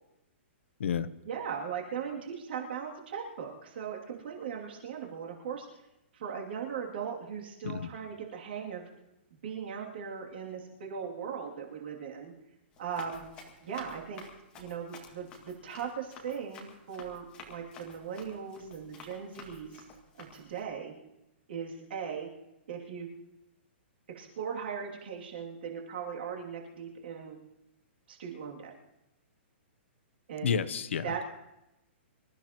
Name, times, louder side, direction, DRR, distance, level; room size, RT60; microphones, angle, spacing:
voice 1, 1.2-5.7 6.1-8.8 9.4-12.3 12.8-13.3 13.6-14.2 14.5-19.8 20.2-20.9 21.5-22.3 22.7-23.1 24.1-27.4 28.1-28.7 30.3-30.6 31.0-31.2, right 7 dB, 55° right, -1 dB, 2.7 m, -38 dB
Run, 12.7-20.6, left 4 dB, 15° left, 1.9 m, -51 dB
voice 2, 30.4-31.2, left 7 dB, 80° left, 14 dB, 0.9 m, -30 dB
26.0 x 14.0 x 3.0 m, 0.92 s
hypercardioid pair, 170°, 7 cm